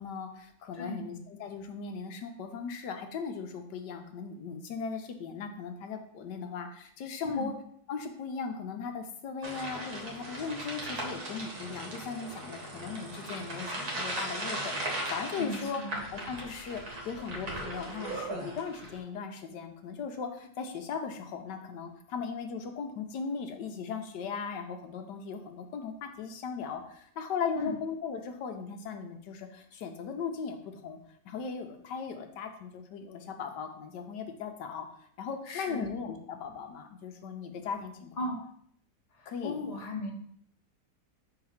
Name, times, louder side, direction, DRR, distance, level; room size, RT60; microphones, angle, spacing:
voice 1, 0.0-7.5 7.9-15.8 16.1-31.0 31.2-34.9 35.2-38.1 39.3-39.7, left 5 dB, 85° left, 5 dB, 1.3 m, -38 dB
voice 2, 0.7-1.1 7.2-7.5 15.4-16.0 27.5-27.7 35.5-35.9 38.2-38.4 39.1-40.1, left 2 dB, 30° left, 0 dB, 0.9 m, -36 dB
sound 1, 9.4-19.0, right 1 dB, 60° right, 1.9 m, -38 dB
4.9 x 3.9 x 5.7 m, 0.65 s
omnidirectional pair, 1.8 m